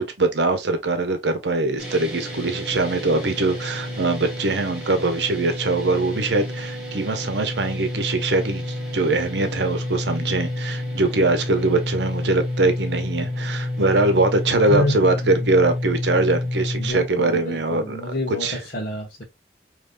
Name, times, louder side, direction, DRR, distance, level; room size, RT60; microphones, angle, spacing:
voice 1, 0.0-18.0 18.4-18.6, right 2 dB, 80° right, 0.8 m, -22 dB
sound 1, 1.8-16.9, left 1 dB, 5° right, 1.6 m, -29 dB
voice 2, 14.7-15.5 16.8-19.2, left 1 dB, 50° left, 1.1 m, -28 dB
5.2 x 3.0 x 2.5 m
head